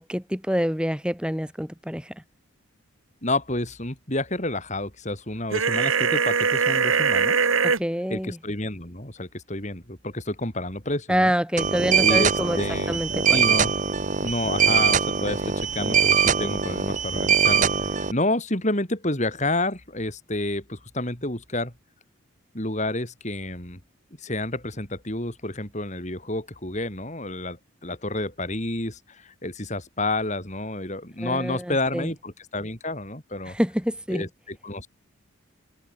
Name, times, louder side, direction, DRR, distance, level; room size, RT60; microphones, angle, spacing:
voice 1, 0.0-2.1 7.6-8.4 11.1-12.6 12.9-13.4 31.2-32.1 33.5-34.3, equal, 5° right, 3.8 m, -26 dB
voice 2, 3.2-7.4 8.1-11.3 12.0-13.0 13.3-13.7 14.2-21.7 22.5-23.8 24.2-33.6 34.1-34.9, left 2 dB, 35° left, 4.5 m, -29 dB
sound 1, 5.5-7.8, right 5 dB, 75° right, 2.0 m, -21 dB
sound 2, 11.6-18.1, right 6 dB, 35° right, 1.0 m, -22 dB
head